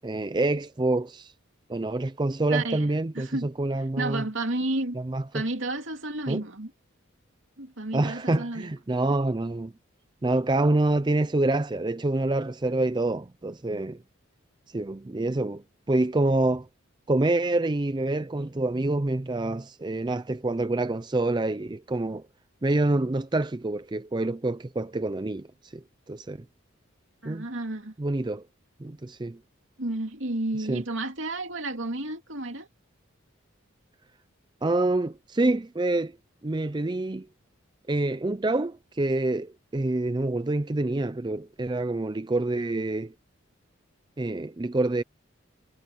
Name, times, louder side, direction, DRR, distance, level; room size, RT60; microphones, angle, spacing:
voice 1, 0.0-1.3 1.7-4.2 4.9-5.4 6.3-6.4 7.9-9.7 10.2-14.0 14.7-16.7 17.1-22.2 22.6-26.4 27.2-27.5 28.0-28.4 28.8-29.4 30.7-30.8 34.6-36.1 36.4-37.3 37.9-43.1 44.2-45.0, right 2 dB, 20° right, 0.4 m, -27 dB
voice 2, 2.5-3.5 3.9-5.0 5.3-6.7 7.6-8.7 27.2-27.9 29.8-32.7, right 2 dB, 70° right, 2.6 m, -31 dB
head